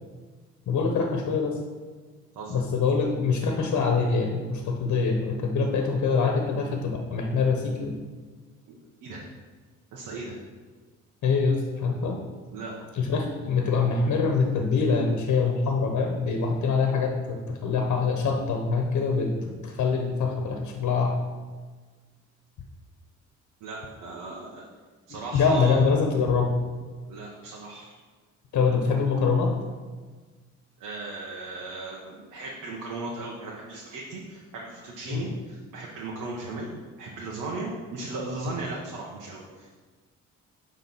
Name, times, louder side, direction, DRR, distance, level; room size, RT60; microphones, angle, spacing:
voice 1, 0.7-1.6 2.5-7.9 11.2-12.2 12.9-21.1 25.1-26.5 28.5-29.5 35.1-35.3, left 4 dB, 70° left, 2 dB, 1.1 m, -24 dB
voice 2, 8.7-9.2 9.9-10.4 12.5-12.7 23.6-24.6 25.1-25.8 27.1-27.9 30.8-36.7 37.0-39.7, right 3 dB, 85° right, -3 dB, 1.3 m, -37 dB
9.2 x 3.6 x 6.1 m, 1.4 s
cardioid pair, 90°, 30 cm